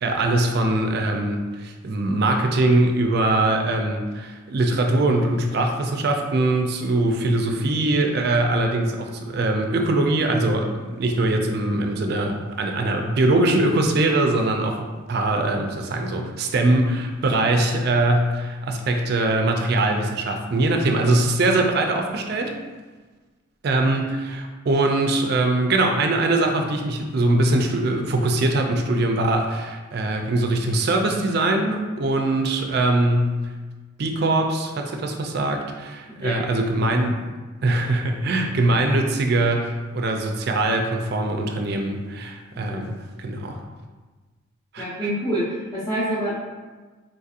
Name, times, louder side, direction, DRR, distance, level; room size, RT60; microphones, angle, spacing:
voice 1, 0.0-22.5 23.6-33.4 34.0-37.2 37.6-42.9 43.2-43.6 44.7-44.9, right 2 dB, 50° right, 3 dB, 0.3 m, -22 dB
voice 2, 44.8-45.4 45.7-46.3, right 1 dB, 15° left, -13 dB, 0.7 m, -26 dB
3.8 x 2.7 x 2.4 m, 1.3 s
head